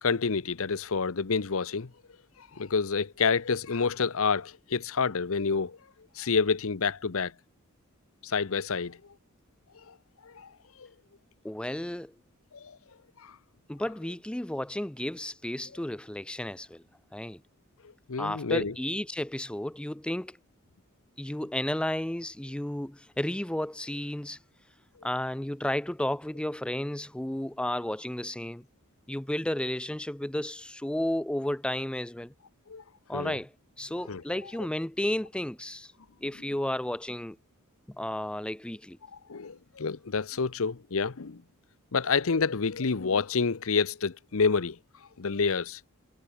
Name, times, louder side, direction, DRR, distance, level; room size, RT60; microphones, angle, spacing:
voice 1, 0.0-1.9 2.6-5.8 6.2-7.3 8.2-9.0 9.9-10.0 10.2-10.5 10.8-10.9 12.5-12.8 13.2-13.3 18.1-18.7 32.7-32.8 33.1-33.4 34.1-34.4 39.3-41.4 41.9-44.8 45.2-45.8, left 5 dB, 70° left, 0.8 m, -28 dB
voice 2, 11.4-12.1 13.7-16.8 17.1-17.4 18.2-20.4 21.2-24.4 25.0-28.7 29.1-32.3 33.1-33.5 33.8-35.9 36.2-37.4 38.0-39.0, left 1 dB, 5° left, 0.5 m, -32 dB
head